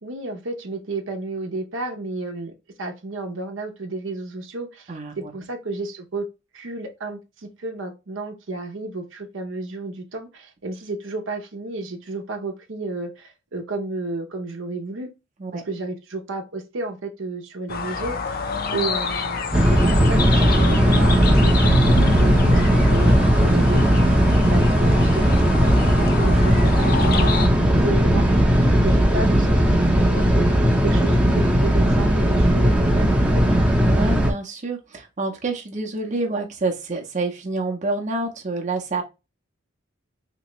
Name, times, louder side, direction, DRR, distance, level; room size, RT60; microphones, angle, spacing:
voice 1, 0.0-2.5 2.8-6.3 6.5-15.1 15.5-18.4 18.7-24.2 24.5-27.4 27.7-28.3 28.7-30.5 30.8-33.4, right 3 dB, 75° right, 0.8 m, -32 dB
voice 2, 4.9-5.3 15.4-15.6 28.7-28.8 33.8-39.0, right 3 dB, 40° right, 0.7 m, -28 dB
sound 1, 17.7-27.5, left 5 dB, 50° left, 0.6 m, -29 dB
sound 2, 19.5-34.3, equal, 5° right, 0.6 m, -17 dB
Keyboard (musical), 21.6-25.3, equal, 70° left, 0.9 m, -30 dB
3.4 x 2.9 x 3.0 m
head